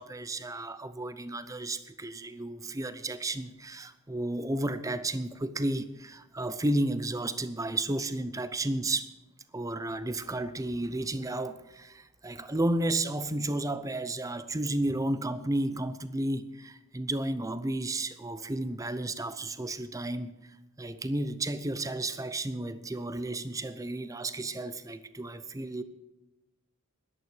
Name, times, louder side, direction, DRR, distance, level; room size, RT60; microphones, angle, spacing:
voice 1, 0.0-9.1 9.5-20.3 20.8-25.8, right 1 dB, 15° right, 13 dB, 0.6 m, -32 dB
11.5 x 11.0 x 6.4 m, 1.0 s
head